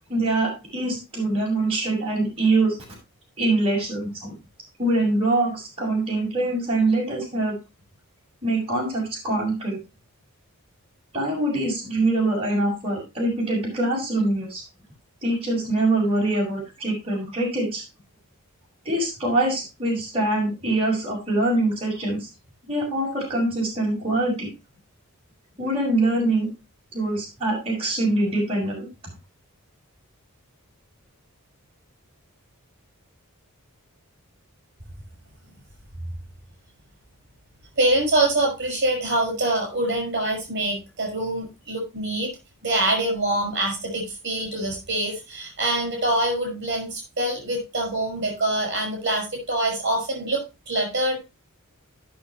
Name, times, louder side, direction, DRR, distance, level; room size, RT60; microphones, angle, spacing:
voice 1, 0.1-2.8 3.4-4.3 4.8-7.5 8.4-9.8 11.1-14.6 15.2-17.8 18.9-22.3 22.7-24.5 25.6-26.5 26.9-28.9, right 2 dB, 25° right, -4 dB, 5.4 m, -24 dB
voice 2, 37.8-42.3 42.6-50.4 50.7-51.2, right 1 dB, 50° right, 2 dB, 5.8 m, -25 dB
15.5 x 6.6 x 3.0 m, 0.26 s
head